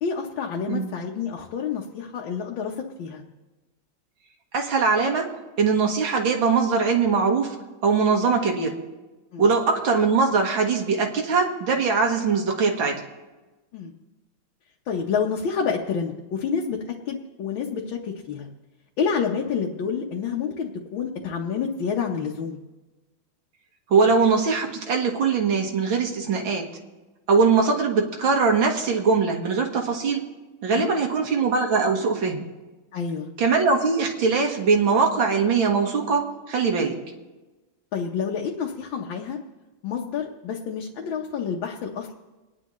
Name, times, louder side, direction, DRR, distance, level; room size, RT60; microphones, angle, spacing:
voice 1, 0.0-2.7 3.0-3.2 9.3-9.5 13.7-13.9 14.9-16.8 17.1-18.5 19.0-22.6 30.7-30.9 32.9-33.3 37.9-39.4 39.8-42.1, left 6 dB, 80° left, -1 dB, 1.7 m, -28 dB
voice 2, 4.5-7.6 7.8-8.8 9.4-13.0 23.9-26.7 27.3-30.3 30.6-32.4 33.4-37.0, right 5 dB, 85° right, 1 dB, 2.2 m, -21 dB
28.5 x 9.9 x 3.1 m, 1.2 s
omnidirectional pair, 2.1 m